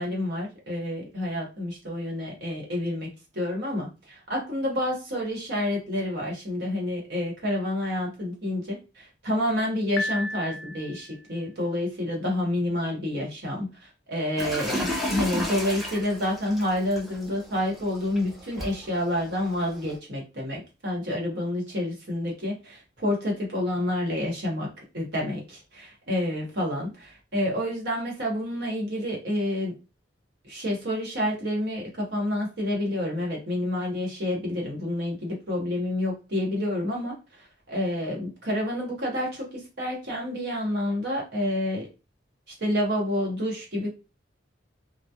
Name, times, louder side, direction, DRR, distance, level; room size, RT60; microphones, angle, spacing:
voice 1, 0.0-3.1 3.3-24.7 24.9-29.7 30.4-41.9 42.6-43.9, left 1 dB, 60° right, -1 dB, 1.0 m, -29 dB
Piano, 10.0-11.3, left 1 dB, 80° left, 0.4 m, -33 dB
sound 1, 14.4-20.0, equal, ahead, 0.5 m, -34 dB
2.3 x 2.1 x 2.7 m, 0.29 s
head